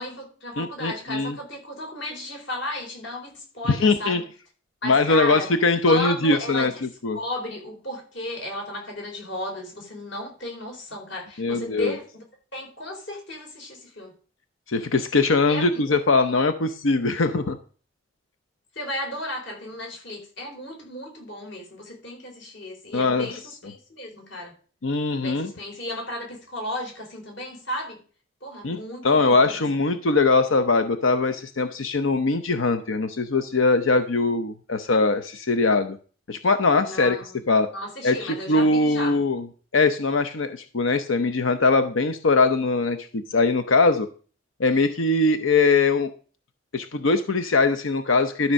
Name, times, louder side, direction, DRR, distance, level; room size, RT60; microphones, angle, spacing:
voice 1, 0.0-4.2 4.8-5.5 5.8-6.8 7.1-12.2 12.5-14.1 15.5-16.0 16.2-16.3 18.7-24.5 25.2-28.0 28.4-29.6 36.8-37.4 37.7-39.2, left 1 dB, 65° left, 0 dB, 4.2 m, -34 dB
voice 2, 0.6-1.4 3.7-4.2 4.8-7.2 11.4-11.9 14.7-17.6 22.9-23.3 24.8-25.5 28.6-36.0 36.3-37.2 37.5-37.7 38.0-39.5 39.7-44.1 44.6-46.1 46.7-48.5, left 3 dB, 85° left, 9 dB, 0.8 m, -21 dB
12.5 x 4.5 x 6.4 m, 0.40 s
head